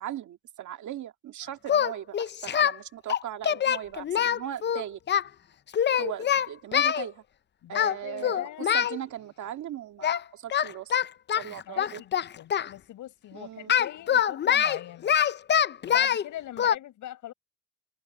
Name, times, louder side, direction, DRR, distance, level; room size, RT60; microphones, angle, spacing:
voice 1, 0.0-5.0 6.0-7.2 7.7-10.9 11.3-12.0 13.3-13.7, right 11 dB, 75° right, 1.9 m, -38 dB
Singing, 1.7-2.8 3.1-5.2 5.7-7.0 7.7-8.0 8.2-9.0 10.0-10.2 10.5-12.7 13.7-16.2 16.6-16.7, left 9 dB, 35° left, 0.5 m, -24 dB
voice 2, 7.6-8.7 11.7-15.1 15.8-17.3, left 13 dB, 80° left, 6.1 m, -41 dB
cardioid pair, 90°, 30 cm